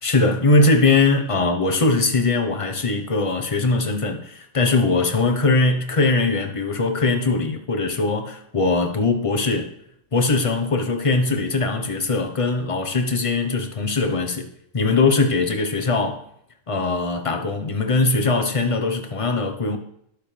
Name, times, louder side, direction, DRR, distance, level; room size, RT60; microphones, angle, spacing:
voice 1, 0.0-9.7 10.1-14.5 14.7-16.2 16.7-19.8, left 3 dB, 25° left, 1.1 m, -21 dB
19.5 x 6.5 x 3.4 m
omnidirectional pair, 1.4 m